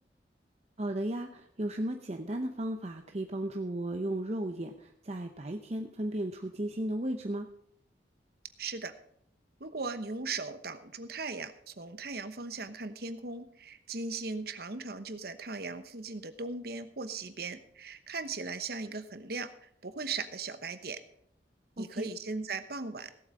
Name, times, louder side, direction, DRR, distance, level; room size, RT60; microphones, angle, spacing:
voice 1, 0.8-7.5 21.8-22.1, right 1 dB, 35° right, 5 dB, 0.7 m, -35 dB
voice 2, 8.6-8.9 9.6-21.0 21.8-23.3, right 4 dB, 55° right, 11 dB, 1.0 m, -38 dB
17.0 x 8.0 x 4.9 m, 0.69 s
head